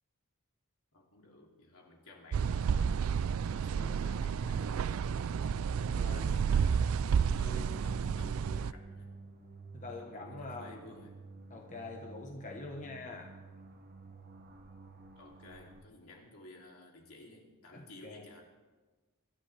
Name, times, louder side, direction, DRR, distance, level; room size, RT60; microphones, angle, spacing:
voice 1, 0.9-3.1 3.5-5.6 6.1-9.2 9.8-11.2 12.7-13.0 15.1-18.4, left 1 dB, 75° left, 0 dB, 2.8 m, -54 dB
sound 1, 2.3-8.7, right 6 dB, 70° right, 0.3 m, -31 dB
voice 2, 5.9-6.7 9.7-11.0 11.5-13.3 17.7-18.2, left 3 dB, 35° left, 1 dB, 1.1 m, -45 dB
sound 2, 7.0-15.8, right 2 dB, 40° right, 1.2 m, -51 dB
24.5 x 13.0 x 3.4 m, 1.3 s
head